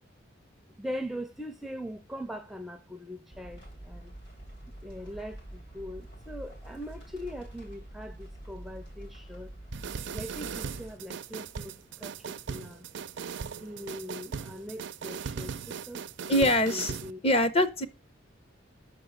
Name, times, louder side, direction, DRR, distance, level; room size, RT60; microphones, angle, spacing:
voice 1, 0.8-4.1 4.8-9.5 10.1-12.9 13.6-17.2, equal, ahead, 0.5 m, -41 dB
sound 1, 3.3-10.9, right 1 dB, 65° left, 3.7 m, -46 dB
sound 2, 9.7-17.1, right 6 dB, 65° right, 0.5 m, -38 dB
voice 2, 16.3-16.9 17.2-17.9, left 1 dB, 30° left, 0.7 m, -23 dB
6.5 x 5.3 x 6.6 m
head